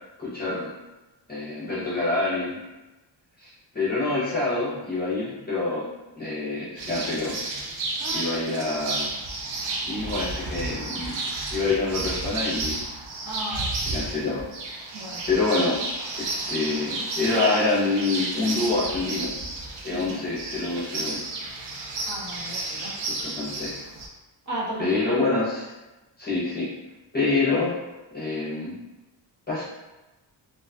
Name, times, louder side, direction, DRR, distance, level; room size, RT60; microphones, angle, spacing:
voice 1, 0.2-0.7 1.3-2.6 3.4-5.9 6.2-7.4 8.1-9.1 9.9-11.2 11.5-12.8 13.9-14.4 15.3-15.8 16.1-19.3 19.8-21.2 23.2-23.7 24.8-25.7 26.2-26.7 27.1-27.7 28.1-28.7 29.5-29.6, left 3 dB, 20° left, -10 dB, 0.6 m, -26 dB
sound 1, 6.8-24.1, right 2 dB, 80° right, 0.5 m, -32 dB
voice 2, 8.0-8.6 13.2-13.7 14.9-15.2 17.2-17.6 19.9-20.1 22.0-23.1 24.5-25.2, equal, 40° right, -8 dB, 0.8 m, -33 dB
2.6 x 2.2 x 2.3 m, 1.1 s
wide cardioid pair, 170°, 45 cm